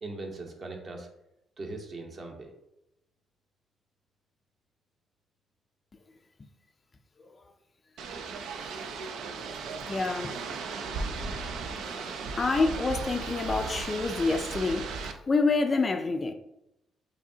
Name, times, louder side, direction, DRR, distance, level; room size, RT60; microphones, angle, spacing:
voice 1, 0.0-1.1 1.6-2.5, right 2 dB, 45° right, 0.8 m, -39 dB
sound 1, 8.0-15.1, right 4 dB, 80° right, 0.4 m, -36 dB
voice 2, 9.9-10.4 11.7-16.3, left 3 dB, 35° left, 0.4 m, -28 dB
4.9 x 2.7 x 2.7 m
cardioid pair, 90°, 0 cm